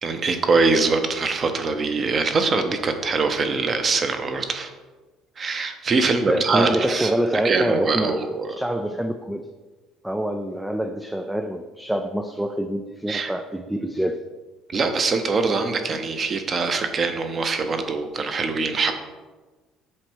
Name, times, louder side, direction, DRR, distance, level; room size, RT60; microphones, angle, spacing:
voice 1, 0.0-4.7 5.4-7.1 7.4-8.6 13.1-13.3 14.7-18.9, right 4 dB, 25° right, 7 dB, 0.8 m, -23 dB
voice 2, 6.0-8.2 8.6-9.5 10.0-14.2, right 1 dB, 5° right, 7 dB, 0.3 m, -26 dB
7.7 x 4.4 x 6.1 m, 1.3 s
cardioid pair, 170°, 0 cm